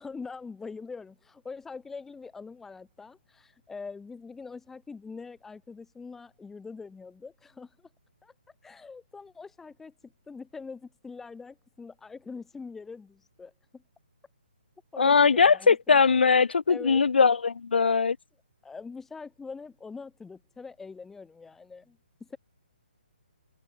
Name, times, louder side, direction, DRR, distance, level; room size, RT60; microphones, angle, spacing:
voice 1, 0.0-7.9 8.2-8.3 8.6-13.8 14.9-16.0 16.7-17.0 18.6-22.4, left 4 dB, 5° left, 5.8 m, -43 dB
voice 2, 15.0-18.2, left 5 dB, 90° left, 0.4 m, -21 dB
hypercardioid pair, 160°, 6 cm